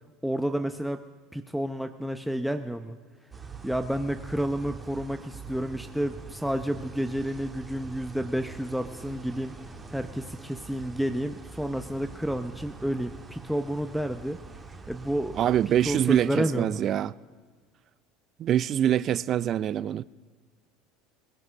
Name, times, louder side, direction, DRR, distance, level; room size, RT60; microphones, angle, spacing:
voice 1, 0.2-1.0 1.3-3.0 3.6-9.6 9.9-14.4 14.9-15.4 15.9-16.8, equal, ahead, 0.7 m, -30 dB
sound 1, 3.3-16.2, right 4 dB, 25° right, 1.8 m, -44 dB
voice 2, 15.4-17.1 18.4-20.0, right 10 dB, 45° right, 0.4 m, -24 dB
19.0 x 10.5 x 6.4 m
hypercardioid pair, 75°, 0 cm